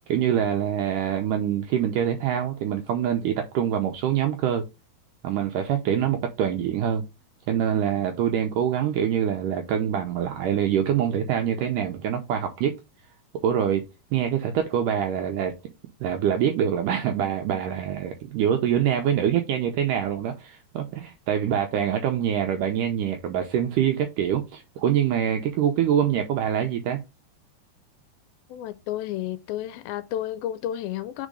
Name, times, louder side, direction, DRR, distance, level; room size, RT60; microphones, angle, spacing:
voice 1, 0.1-4.6 5.2-7.0 7.5-12.8 13.4-13.8 14.1-15.5 16.0-27.0, right 9 dB, 90° right, 1.8 m, -25 dB
voice 2, 28.5-31.3, left 12 dB, 80° left, 2.2 m, -31 dB
5.1 x 4.5 x 4.9 m
omnidirectional pair, 4.5 m